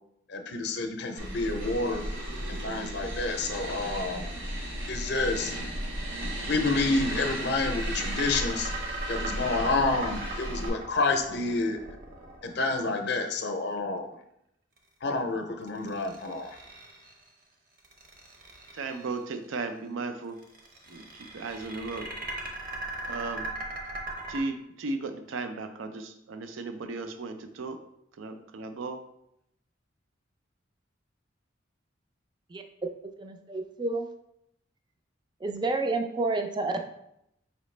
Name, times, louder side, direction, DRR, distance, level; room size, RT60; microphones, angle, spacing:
voice 1, 0.3-2.1 2.4-4.3 4.9-5.5 6.5-8.7 9.1-11.8 12.4-14.2 15.0-16.5, left 3 dB, 55° left, 5 dB, 0.5 m, -29 dB
sound 1, 1.2-10.7, right 1 dB, 65° right, 1.2 m, -35 dB
sound 2, 6.6-12.8 15.7-17.2 17.8-19.1 20.4-24.4, right 2 dB, 45° right, 0.8 m, -39 dB
voice 2, 18.8-20.4 20.9-21.0 21.3-22.1 23.1-23.5 24.3-27.8 28.2-29.0, right 3 dB, 85° right, 8 dB, 0.4 m, -35 dB
voice 3, 33.2-34.1 35.4-36.8, right 3 dB, 25° right, 5 dB, 0.4 m, -29 dB
4.9 x 3.0 x 3.2 m, 0.78 s
head